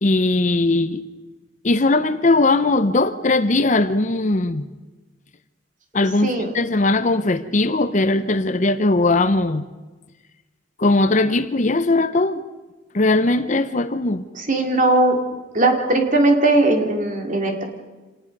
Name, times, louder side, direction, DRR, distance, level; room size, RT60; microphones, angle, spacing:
voice 1, 0.0-1.1 1.6-4.7 5.9-9.6 10.8-12.4 12.9-14.2, left 2 dB, 35° left, 12 dB, 0.7 m, -19 dB
voice 2, 14.4-15.2 15.5-17.6, right 2 dB, 40° right, 3 dB, 2.6 m, -18 dB
26.5 x 19.0 x 5.4 m, 1.2 s
head